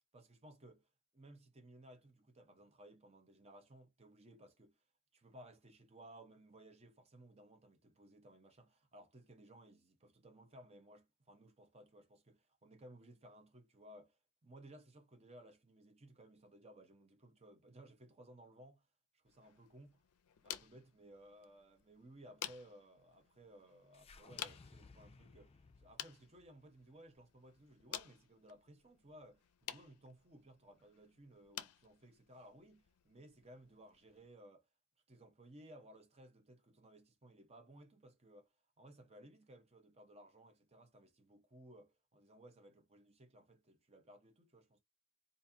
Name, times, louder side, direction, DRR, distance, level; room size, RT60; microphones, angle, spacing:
voice 1, 0.1-0.9 1.1-4.8 5.1-18.9 19.1-20.0 20.4-34.7 35.1-38.5 38.8-44.8, right 1 dB, 30° right, 0.8 m, -60 dB
sound 1, 19.3-34.3, left 11 dB, 85° left, 0.5 m, -53 dB
sound 2, 23.9-28.2, left 3 dB, 25° left, 0.4 m, -62 dB
4.0 x 2.6 x 2.7 m
head